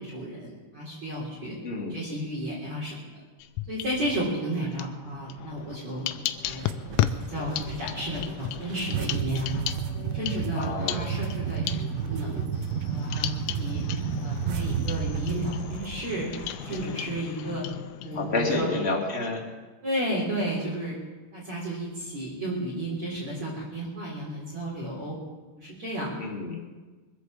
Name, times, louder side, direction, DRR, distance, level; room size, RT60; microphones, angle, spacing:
voice 1, 0.0-1.5 1.9-2.9 3.7-6.1 6.5-6.6 7.3-9.6 10.1-12.4 12.9-13.8 14.2-16.3 16.6-17.6 18.0-18.7 19.8-20.9 21.3-25.2 25.6-26.2, right 1 dB, 45° right, -7 dB, 4.4 m, -32 dB
voice 2, 1.6-1.9 10.5-10.9 18.1-19.4 26.2-26.6, left 2 dB, 20° left, -2 dB, 2.0 m, -29 dB
sound 1, 3.4-4.3 4.7-18.5, left 12 dB, 85° left, 1.9 m, -35 dB
sound 2, 6.5-16.9, right 7 dB, 80° right, 2.9 m, -32 dB
23.0 x 8.3 x 7.5 m, 1.3 s
omnidirectional pair, 4.7 m